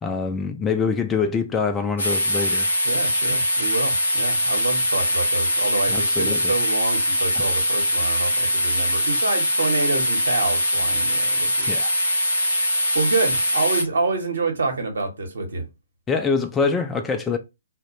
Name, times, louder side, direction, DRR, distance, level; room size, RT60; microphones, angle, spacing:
voice 1, 0.0-2.7 5.9-6.5 11.7-11.9 16.1-17.4, left 5 dB, 15° left, 0.3 m, -24 dB
sound 1, 2.0-13.8, left 1 dB, 65° left, 0.6 m, -22 dB
voice 2, 2.8-11.8 12.9-15.6, right 3 dB, 65° right, 0.9 m, -27 dB
2.3 x 2.0 x 2.9 m
figure-of-eight pair, 125°, 0 cm